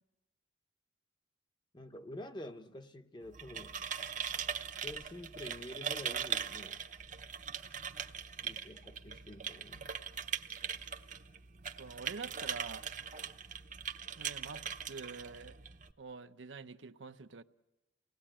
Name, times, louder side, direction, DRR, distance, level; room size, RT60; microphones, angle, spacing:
voice 1, 1.7-3.9 4.8-6.9 8.4-9.9, left 1 dB, 25° left, 0.8 m, -48 dB
sound 1, 3.2-15.9, right 7 dB, 40° right, 0.7 m, -41 dB
voice 2, 7.5-7.9 11.8-12.9 14.1-15.6 16.0-17.4, right 4 dB, 80° right, 0.8 m, -47 dB
28.0 x 18.5 x 8.9 m
head